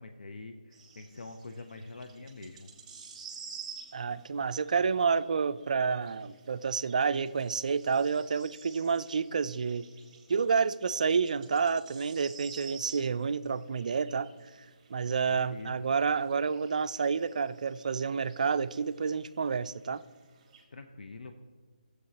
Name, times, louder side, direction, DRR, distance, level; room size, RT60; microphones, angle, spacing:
voice 1, 0.0-2.7 15.3-15.9 20.7-21.3, left 3 dB, 75° left, 6 dB, 0.6 m, -45 dB
sound 1, 0.7-20.6, right 6 dB, 20° right, 1.6 m, -52 dB
voice 2, 3.9-9.9 10.3-14.3 14.9-20.0, right 5 dB, 60° right, 14 dB, 0.4 m, -29 dB
12.5 x 7.8 x 2.8 m, 1.5 s
figure-of-eight pair, 160°, 5 cm